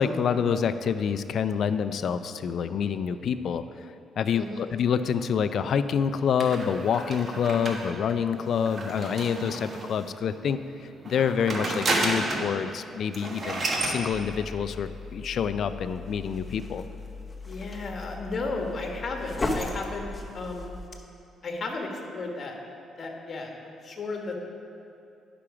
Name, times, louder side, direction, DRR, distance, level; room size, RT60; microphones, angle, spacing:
voice 1, 0.0-3.7 4.2-10.6 11.1-16.8, left 7 dB, 60° left, 12 dB, 0.4 m, -27 dB
voice 2, 4.3-4.7 17.4-20.1 20.3-20.7 21.4-22.6 23.0-24.4, left 3 dB, 45° left, 1 dB, 1.3 m, -34 dB
sound 1, 6.4-10.0 11.0-12.5 12.8-12.9 13.1-14.0, right 2 dB, 40° right, 1.2 m, -31 dB
sound 2, 14.1-20.9, left 2 dB, 25° left, 0.9 m, -37 dB
10.0 x 5.9 x 4.9 m, 2.6 s
cardioid pair, 90°, 0 cm